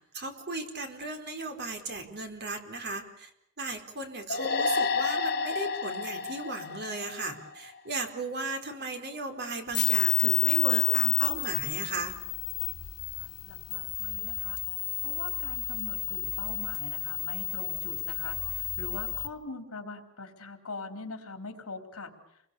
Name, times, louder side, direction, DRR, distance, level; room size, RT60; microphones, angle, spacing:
voice 1, 0.1-3.3 3.6-12.1, right 2 dB, 50° right, 5 dB, 4.4 m, -36 dB
sound 1, 4.3-7.8, left 4 dB, 45° left, 3.2 m, -30 dB
sound 2, 9.7-19.3, left 18 dB, 85° left, 1.6 m, -30 dB
voice 2, 13.2-14.6 15.0-22.1, left 3 dB, 65° left, 6 dB, 4.1 m, -43 dB
29.5 x 23.0 x 7.0 m, 0.77 s
head